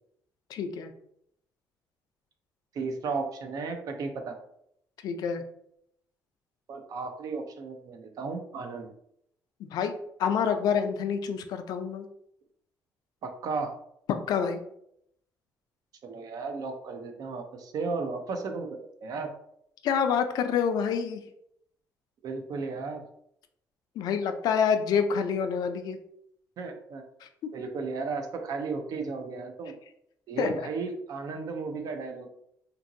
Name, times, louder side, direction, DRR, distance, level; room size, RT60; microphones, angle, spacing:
voice 1, 0.5-0.9 5.0-5.4 9.7-9.9 10.2-12.1 14.1-14.6 19.8-21.2 24.0-26.0 27.2-27.5 30.4-30.5, left 7 dB, 70° left, 7 dB, 0.4 m, -27 dB
voice 2, 2.7-4.4 6.7-8.9 13.2-13.7 16.0-19.3 22.2-23.0 26.6-27.0 27.5-29.8 30.3-32.3, right 4 dB, 60° right, 5 dB, 0.5 m, -34 dB
2.8 x 2.6 x 2.6 m, 0.74 s
cardioid pair, 80°, 7 cm